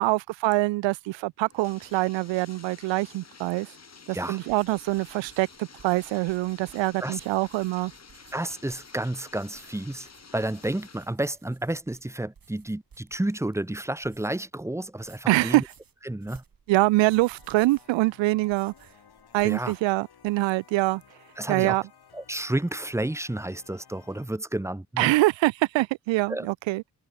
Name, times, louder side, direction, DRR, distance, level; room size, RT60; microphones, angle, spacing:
voice 1, 0.0-3.7 4.1-7.9 15.3-15.6 16.7-18.7 19.3-21.0 21.5-21.8 25.0-26.8, right 20 dB, 80° right, 0.5 m, -24 dB
Bathtub (filling or washing), 1.4-11.2, left 5 dB, 35° left, 3.3 m, -51 dB
sound 1, 4.5-14.5 14.8-19.9 20.2-20.7, right 6 dB, 50° right, 5.2 m, -57 dB
voice 2, 8.3-15.6 16.1-16.4 19.4-19.7 21.4-21.8 22.1-25.1 26.3-26.5, right 1 dB, 5° right, 0.9 m, -31 dB
sound 2, 16.8-24.3, left 7 dB, 55° left, 6.2 m, -56 dB
cardioid pair, 65°, 44 cm